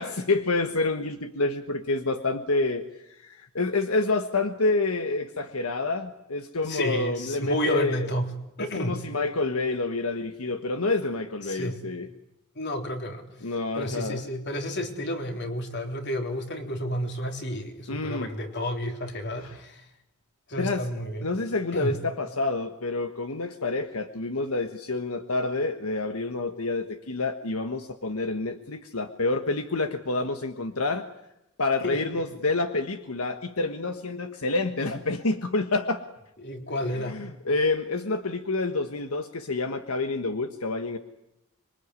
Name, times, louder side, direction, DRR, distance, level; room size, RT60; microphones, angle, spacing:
voice 1, 0.0-8.1 8.6-12.1 13.4-14.2 17.9-18.3 19.4-19.6 20.6-20.9 21.2-31.1 31.6-36.0 37.0-41.0, left 3 dB, 90° left, 8 dB, 1.4 m, -28 dB
voice 2, 6.7-8.3 8.6-9.0 11.5-11.8 12.6-13.2 13.8-19.8 20.5-21.3 21.7-21.9 31.8-32.0 36.4-37.2, equal, 55° left, 4 dB, 3.7 m, -31 dB
26.0 x 23.5 x 9.7 m, 0.86 s
head